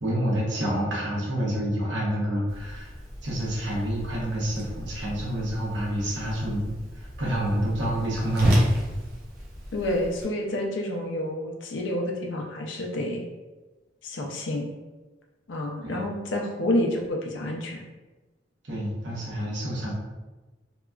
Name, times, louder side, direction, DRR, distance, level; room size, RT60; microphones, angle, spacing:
voice 1, 0.0-2.9 3.2-8.7 15.8-16.1 18.6-19.9, equal, 85° right, -4 dB, 0.9 m, -28 dB
Whoosh swoosh swish, 2.5-10.2, equal, 55° right, 0.6 m, -31 dB
voice 2, 9.7-13.2 14.0-14.7 15.5-17.8, left 1 dB, 80° left, 1 dB, 0.5 m, -29 dB
2.8 x 2.2 x 2.3 m, 1.2 s
head